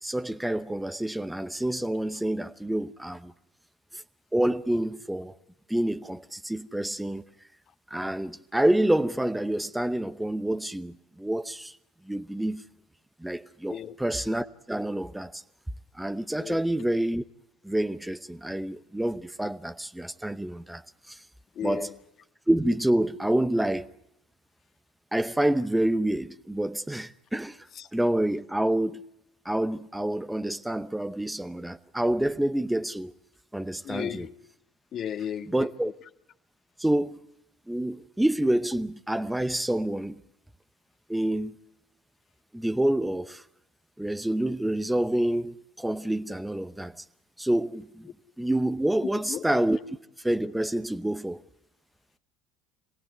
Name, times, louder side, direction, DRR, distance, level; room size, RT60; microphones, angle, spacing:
voice 1, 0.0-3.3 3.9-4.0 4.3-5.4 5.7-7.2 7.9-11.8 12.1-12.6 13.2-15.4 15.9-17.2 17.6-21.3 21.6-21.9 22.5-23.9 25.1-27.7 27.9-29.0 29.4-33.1 33.5-34.2 35.5-35.9 36.8-37.2 37.7-40.2 41.1-41.5 42.5-43.4 44.0-47.0 47.4-48.1 48.4-49.8 50.2-51.4, right 1 dB, 5° right, 0.8 m, -28 dB
voice 2, 21.6-22.0 27.7-27.9 33.8-34.3 34.9-35.9 49.0-49.4, left 9 dB, 45° left, 1.8 m, -35 dB
26.5 x 17.0 x 8.0 m
hypercardioid pair, 80°, 0 cm